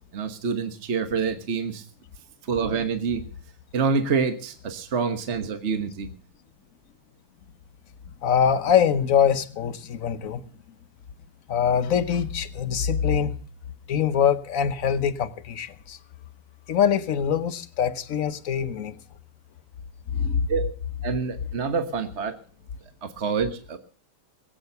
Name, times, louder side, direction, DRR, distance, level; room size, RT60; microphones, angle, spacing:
voice 1, 0.1-1.8 2.4-3.2 3.7-6.1 20.5-20.7 21.0-22.3 23.0-23.8, right 5 dB, 40° right, 1.3 m, -27 dB
voice 2, 8.2-10.4 11.5-13.3 13.9-16.0 16.7-18.9 20.1-20.5, left 8 dB, 55° left, 1.0 m, -23 dB
20.5 x 8.8 x 6.7 m
omnidirectional pair, 2.2 m